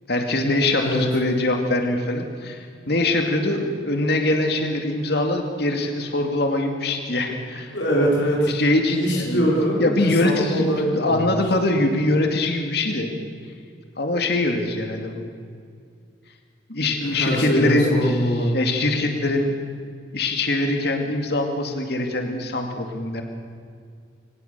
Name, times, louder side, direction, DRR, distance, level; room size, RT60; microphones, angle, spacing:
voice 1, 0.1-7.8 8.5-9.5 9.8-13.1 14.0-15.2 16.7-18.1 18.5-19.5 20.1-23.2, left 2 dB, 65° left, 4 dB, 2.4 m, -23 dB
voice 2, 7.7-8.5 8.8-9.8 10.2-11.4 17.0-18.6, equal, 90° left, -3 dB, 4.8 m, -22 dB
23.5 x 19.5 x 6.9 m, 2.2 s
head